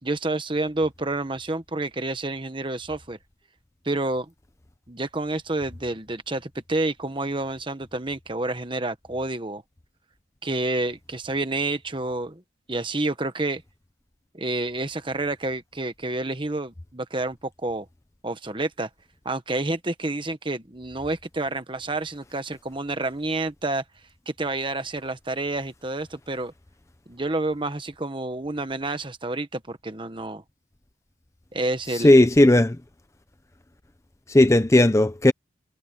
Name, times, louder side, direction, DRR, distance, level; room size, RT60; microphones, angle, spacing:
voice 1, 0.0-3.2 3.8-4.3 4.9-9.6 10.4-12.4 12.7-13.6 14.3-17.9 18.2-18.9 19.2-23.8 24.3-26.5 27.1-30.4 31.5-32.1, right 2 dB, 25° right, 1.3 m, -29 dB
voice 2, 31.9-32.8 34.3-35.3, left 1 dB, 15° left, 0.6 m, -16 dB
head